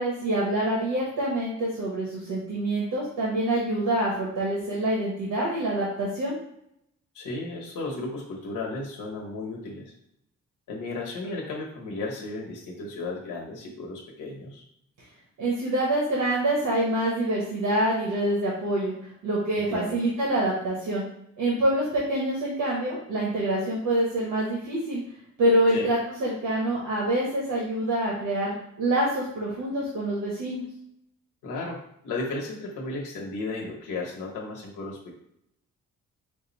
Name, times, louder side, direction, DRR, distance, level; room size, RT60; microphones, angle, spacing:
voice 1, 0.0-6.4 15.4-18.9 19.2-21.0 21.4-25.0 25.4-30.6, right 1 dB, 90° right, -5 dB, 1.2 m, -26 dB
voice 2, 7.1-9.9 10.7-14.6 19.7-20.0 25.7-25.9 31.4-35.2, left 3 dB, 90° left, -2 dB, 1.1 m, -34 dB
5.1 x 2.1 x 4.0 m, 0.75 s
cardioid pair, 130°, 30 cm